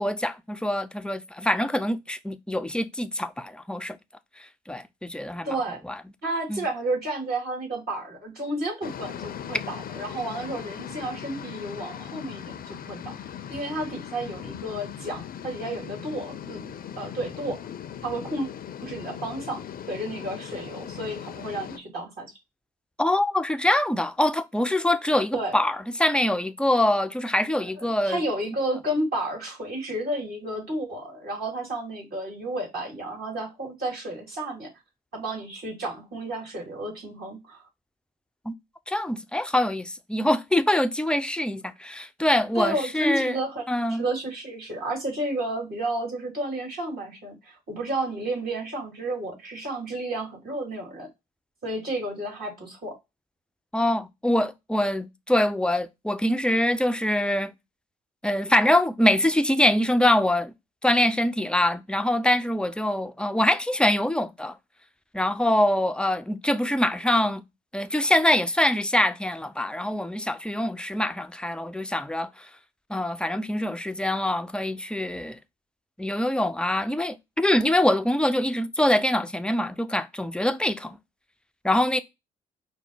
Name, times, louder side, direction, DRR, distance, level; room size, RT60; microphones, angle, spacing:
voice 1, 0.0-4.0 4.7-5.6 5.8-6.0 6.5-6.7 23.0-28.2 38.5-38.6 38.9-43.4 43.7-44.1 53.7-57.5 58.2-60.5 60.8-64.6 65.1-67.4 67.7-72.5 72.9-75.4 76.0-81.0 81.6-82.0, left 1 dB, 5° left, 0.5 m, -24 dB
voice 2, 5.4-5.8 6.2-13.1 13.5-17.6 18.0-18.5 18.8-19.6 19.9-22.3 25.3-25.6 27.8-34.7 35.1-37.6 42.5-43.6 43.9-51.1 51.6-53.0, right 1 dB, 50° right, 2.7 m, -31 dB
sound 1, 8.8-21.8, left 9 dB, 50° left, 0.6 m, -39 dB
5.2 x 2.1 x 4.4 m
hypercardioid pair, 45°, 20 cm